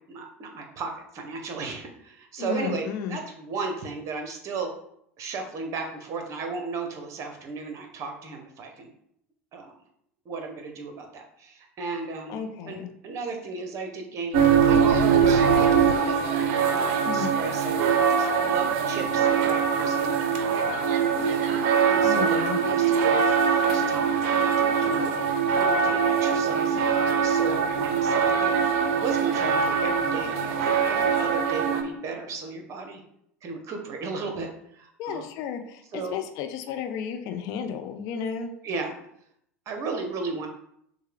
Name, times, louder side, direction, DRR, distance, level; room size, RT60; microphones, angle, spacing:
voice 1, 0.0-4.7 5.2-8.9 9.5-9.7 10.2-12.4 12.7-14.8 15.2-16.2 16.6-17.8 18.1-20.1 20.5-25.1 25.6-28.5 28.9-33.0 33.4-35.2 35.9-36.2 38.6-39.0 39.7-40.5, right 4 dB, 40° right, 4 dB, 0.9 m, -35 dB
voice 2, 2.4-3.2 12.3-12.9 17.0-17.4 22.0-22.6 35.0-38.5, left 7 dB, 50° left, 7 dB, 0.5 m, -33 dB
sound 1, 14.3-31.8, right 6 dB, 55° right, 0.6 m, -22 dB
6.3 x 2.2 x 3.4 m, 0.72 s
figure-of-eight pair, 75°, 8 cm